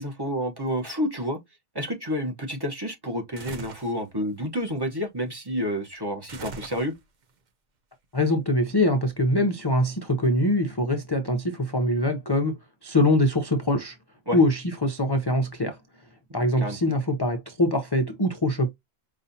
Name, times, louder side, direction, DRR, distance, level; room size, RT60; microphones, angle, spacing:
voice 1, 0.0-1.4 1.7-6.9 14.3-14.4 16.6-16.8, equal, 20° right, 1.0 m, -29 dB
sound 1, 3.4-4.0 6.3-7.2, right 4 dB, 45° right, 0.8 m, -40 dB
voice 2, 8.1-12.5 12.8-14.0 14.3-15.8 16.3-18.7, left 1 dB, 30° left, 0.5 m, -23 dB
5.4 x 2.5 x 2.7 m
omnidirectional pair, 1.2 m